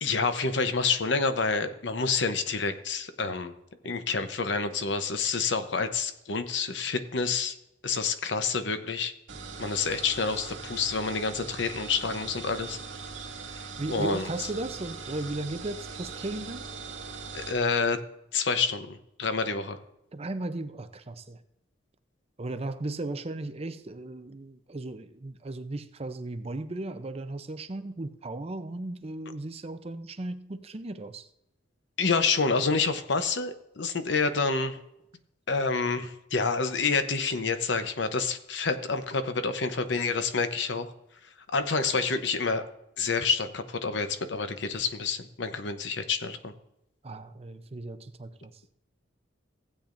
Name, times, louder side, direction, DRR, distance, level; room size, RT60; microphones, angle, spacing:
voice 1, 0.0-3.5 3.8-7.6 7.8-9.1 9.6-12.8 13.9-14.2 17.3-18.0 18.3-19.8 32.0-34.8 35.5-40.9 41.5-42.6 43.0-46.5, left 4 dB, 65° left, 9 dB, 0.8 m, -28 dB
sound 1, 9.3-17.6, right 4 dB, 90° right, 2.1 m, -41 dB
voice 2, 13.8-16.7 20.1-21.4 22.4-31.3 47.0-48.5, right 2 dB, 30° right, 10 dB, 0.6 m, -36 dB
16.0 x 8.6 x 2.6 m, 0.85 s
head